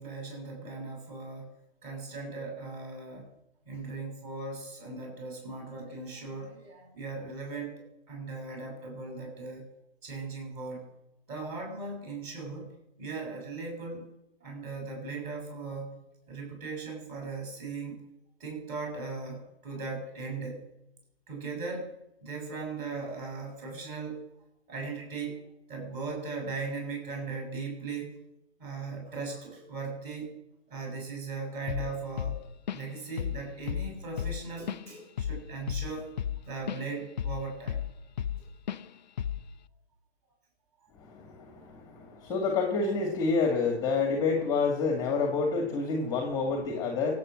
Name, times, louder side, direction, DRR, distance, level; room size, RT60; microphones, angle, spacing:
voice 1, 0.0-1.5 1.8-3.3 3.7-9.7 10.0-10.9 11.3-12.7 13.0-14.0 14.4-16.0 16.3-18.0 18.4-20.6 21.3-21.9 22.2-24.2 24.7-25.4 25.7-28.2 28.6-30.4 30.7-32.4 32.7-36.1 36.4-37.8, right 4 dB, 20° right, 0 dB, 7.3 m, -38 dB
Drum kit / Drum, 31.7-31.9 32.2-32.9 33.2-33.4 33.7-36.8 37.2-38.4 38.7-38.9 39.2-39.5, left 9 dB, 40° left, 0.6 m, -33 dB
voice 2, 41.0-47.1, left 4 dB, 10° left, 3 dB, 2.0 m, -28 dB
24.5 x 8.7 x 6.4 m, 0.85 s
hypercardioid pair, 150°, 33 cm